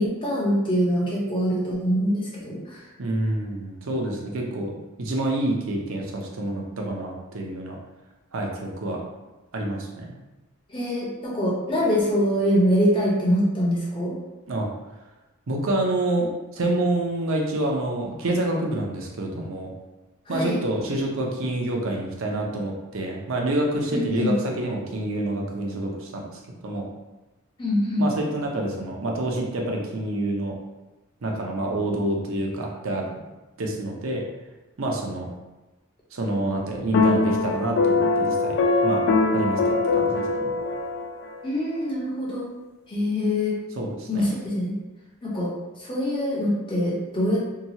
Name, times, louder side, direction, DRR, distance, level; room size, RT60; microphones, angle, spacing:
voice 1, 0.0-2.8 10.7-14.1 20.3-20.6 23.9-24.3 27.6-28.0 41.4-42.5 42.9-43.5 44.1-44.7 45.2-45.5 45.8-47.4, equal, 25° left, -5 dB, 0.6 m, -24 dB
voice 2, 3.0-7.8 8.3-9.0 9.5-10.1 14.5-14.7 15.5-16.3 16.5-19.7 20.3-26.2 26.6-26.9 28.0-30.5 31.2-33.1 33.6-34.2 34.8-35.3 36.1-38.6 38.8-39.0 39.3-40.3 43.8-44.3, right 1 dB, 65° right, 0 dB, 0.6 m, -27 dB
sound 1, 36.9-41.4, left 3 dB, 55° left, 0.3 m, -22 dB
2.8 x 2.3 x 2.7 m, 1.1 s
head